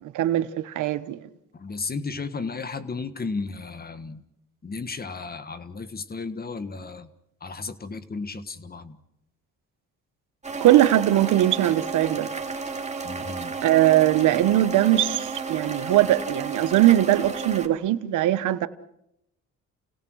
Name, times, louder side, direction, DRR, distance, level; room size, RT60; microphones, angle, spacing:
voice 1, 0.1-1.2 10.6-12.3 13.6-18.7, right 13 dB, 85° right, 1.1 m, -20 dB
voice 2, 1.5-4.2 4.6-7.1 7.4-9.0 13.0-13.6, left 4 dB, 30° left, 1.5 m, -34 dB
sound 1, 10.4-17.7, right 4 dB, 20° right, 2.5 m, -32 dB
29.5 x 18.0 x 6.3 m
cardioid pair, 90°, 30 cm